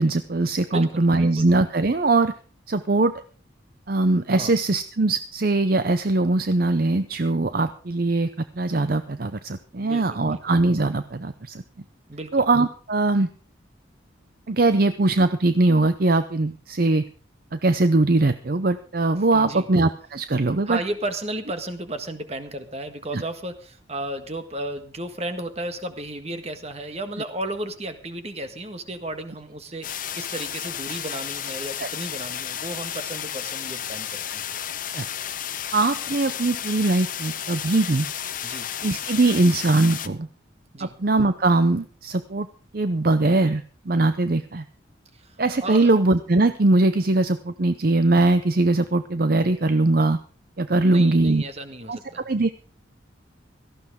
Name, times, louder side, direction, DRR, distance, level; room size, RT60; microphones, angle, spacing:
voice 1, 0.0-2.3 2.7-3.1 3.9-8.3 8.5-11.6 12.3-13.3 14.5-17.0 17.5-20.8 23.1-23.2 31.8-31.9 34.9-35.1 35.7-38.1 38.8-40.3 40.8-42.5 42.7-44.6 45.4-50.2 50.6-51.4 51.9-52.5, right 2 dB, 50° right, 11 dB, 0.7 m, -21 dB
voice 2, 0.7-1.5 4.3-4.5 9.8-10.4 12.1-12.4 19.3-19.7 20.7-34.4 38.4-38.7 40.7-41.0 45.1-45.4 45.6-45.9 50.8-52.3, right 1 dB, 30° right, 8 dB, 1.6 m, -34 dB
sound 1, 29.8-40.1, left 10 dB, 45° left, 0.9 m, -32 dB
17.5 x 14.5 x 3.7 m, 0.40 s
head